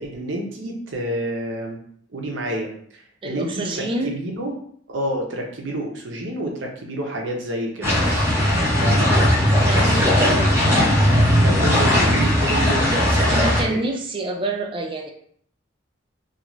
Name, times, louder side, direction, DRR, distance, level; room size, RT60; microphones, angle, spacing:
voice 1, 0.0-1.8 2.1-3.5 3.8-4.5 4.9-8.2 8.8-9.1 9.7-10.5 11.4-13.8, right 1 dB, 75° right, 1 dB, 0.7 m, -29 dB
voice 2, 3.2-4.2 9.7-10.5 13.3-15.1, right 2 dB, 25° right, 2 dB, 0.4 m, -27 dB
sound 1, 7.8-13.6, equal, 10° right, 0.9 m, -18 dB
2.4 x 2.4 x 3.0 m, 0.62 s
head